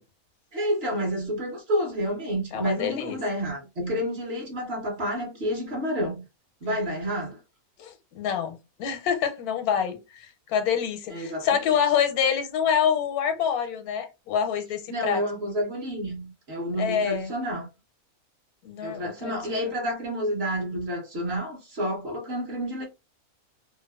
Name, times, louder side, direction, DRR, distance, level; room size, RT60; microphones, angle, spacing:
voice 1, 0.5-6.2 6.6-7.4 11.1-11.5 14.9-17.7 18.8-22.9, equal, 50° right, 0.9 m, -29 dB
voice 2, 2.5-3.2 7.8-15.2 16.8-17.3 18.6-19.3, left 8 dB, 80° left, 1.1 m, -26 dB
2.7 x 2.3 x 2.2 m
omnidirectional pair, 1.6 m